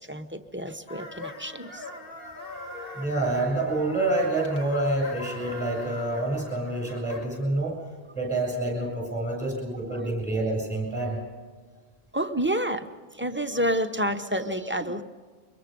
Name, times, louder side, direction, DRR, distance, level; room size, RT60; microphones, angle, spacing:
voice 1, 0.0-1.9 2.8-2.9 9.9-10.0 12.1-15.0, right 1 dB, 10° right, 7 dB, 0.7 m, -29 dB
sound 1, 0.9-7.4, left 2 dB, 65° left, 2.3 m, -41 dB
voice 2, 2.9-7.8 8.1-11.2, right 2 dB, 5° left, 0 dB, 7.8 m, -27 dB
24.0 x 22.0 x 5.3 m, 1.5 s
omnidirectional pair, 1.0 m